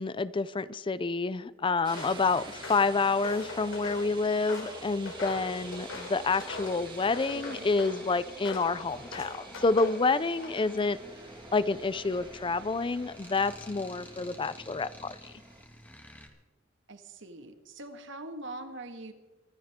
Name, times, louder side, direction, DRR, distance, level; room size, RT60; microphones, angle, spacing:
voice 1, 0.0-11.0 11.5-15.3, left 4 dB, 25° left, 16 dB, 0.5 m, -28 dB
Walk footsteps, 1.8-2.2 2.6-4.1 4.5-6.8 7.1-8.0 8.4-8.7 9.1-10.0 10.3-10.8, left 3 dB, 70° left, 3.3 m, -41 dB
sound 1, 1.8-15.6, right 3 dB, 25° right, 2.4 m, -48 dB
sound 2, 5.1-16.3, equal, 10° left, 2.1 m, -50 dB
voice 2, 16.9-19.1, right 2 dB, 65° right, 7 dB, 1.9 m, -43 dB
24.5 x 14.0 x 3.7 m, 1.2 s
head